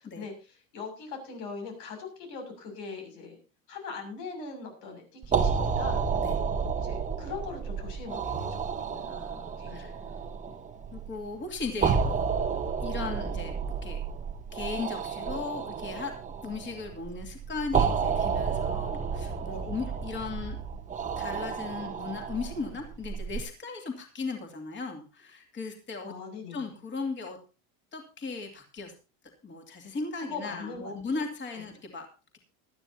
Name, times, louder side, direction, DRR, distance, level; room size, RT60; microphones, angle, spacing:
voice 1, 0.0-3.4 3.7-6.0 6.8-9.1 9.6-9.9 10.4-10.5 19.5-19.8 26.0-26.7 30.2-30.9, left 4 dB, 90° left, 5 dB, 6.8 m, -41 dB
sound 1, 5.2-23.4, right 6 dB, 15° right, 1.0 m, -31 dB
voice 2, 9.0-9.9 10.9-12.2 12.8-14.0 14.5-16.2 16.4-20.6 21.2-26.1 26.5-27.4 27.9-28.9 29.4-32.1, left 4 dB, 25° left, 3 dB, 2.7 m, -37 dB
19.0 x 12.5 x 2.8 m, 0.31 s
cardioid pair, 145°, 45 cm